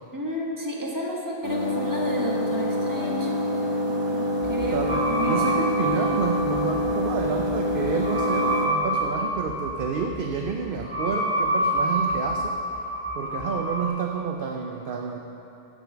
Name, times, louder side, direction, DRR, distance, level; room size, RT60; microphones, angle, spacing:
voice 1, 0.1-3.3 4.5-5.6, equal, 15° right, -3 dB, 1.4 m, -31 dB
sound 1, 1.4-8.7, left 1 dB, 60° left, 1.8 m, -26 dB
sound 2, 4.4-13.9, right 1 dB, 10° left, 2.9 m, -28 dB
voice 2, 4.7-12.8 13.1-15.2, right 6 dB, 55° right, 3 dB, 0.7 m, -29 dB
9.9 x 8.0 x 6.2 m, 2.9 s
omnidirectional pair, 1.4 m